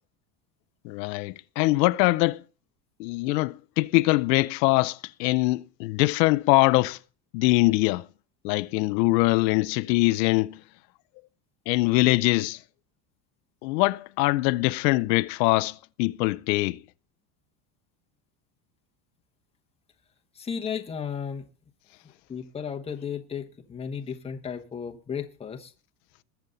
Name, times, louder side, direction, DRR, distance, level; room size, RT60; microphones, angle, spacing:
voice 1, 0.8-2.4 3.0-7.0 7.3-8.1 8.4-10.6 11.7-12.6 13.6-16.8, left 21 dB, 85° left, 0.7 m, -23 dB
voice 2, 20.4-21.5 22.3-25.7, left 7 dB, 10° left, 1.0 m, -34 dB
21.0 x 7.1 x 4.0 m
cardioid pair, 155°, 49 cm